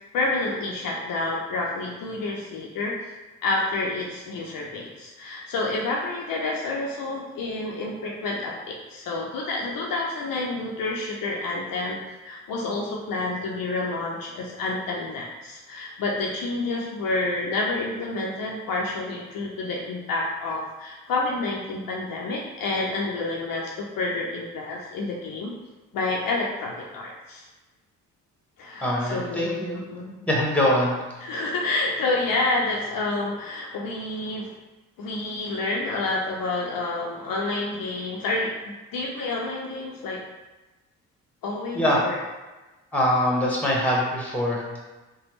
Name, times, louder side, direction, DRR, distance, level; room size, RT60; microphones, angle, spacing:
voice 1, 0.1-2.9 3.4-12.0 12.2-25.5 25.9-27.5 28.6-29.6 29.9-30.0 31.2-34.5 35.0-40.2 41.4-42.2, left 2 dB, 55° left, -2 dB, 0.6 m, -29 dB
voice 2, 28.8-29.8 30.2-30.9 41.7-42.0 42.9-44.6, left 1 dB, 5° left, -3 dB, 1.1 m, -23 dB
3.3 x 2.2 x 3.0 m, 1.1 s
hypercardioid pair, 50°, 40 cm